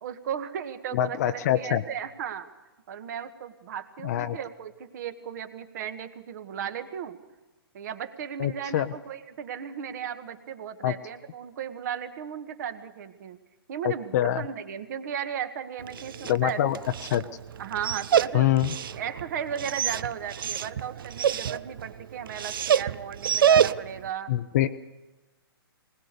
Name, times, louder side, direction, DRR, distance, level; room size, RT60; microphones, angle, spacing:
voice 1, 0.0-2.5 2.9-7.2 7.7-13.4 13.7-16.6 17.6-24.3, right 8 dB, 50° right, 10 dB, 1.6 m, -36 dB
voice 2, 0.9-1.8 4.0-4.4 8.4-8.9 10.8-10.9 13.8-14.4 16.3-16.8 17.1-17.2 18.3-18.8 24.3-24.7, left 12 dB, 40° left, 8 dB, 0.7 m, -24 dB
Dog, 15.8-24.1, right 8 dB, 65° right, 0.6 m, -27 dB
20.5 x 19.5 x 6.8 m, 1.1 s
hypercardioid pair, 140°, 13 cm